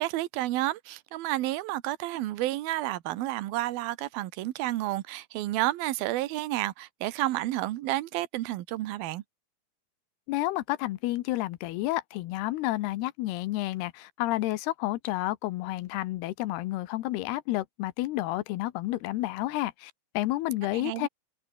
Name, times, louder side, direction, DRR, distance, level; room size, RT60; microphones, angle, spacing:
voice 1, 0.0-9.2 20.7-21.1, right 16 dB, 75° right, 2.8 m, -30 dB
voice 2, 10.3-21.1, left 17 dB, 85° left, 3.0 m, -30 dB
omnidirectional pair, 4.6 m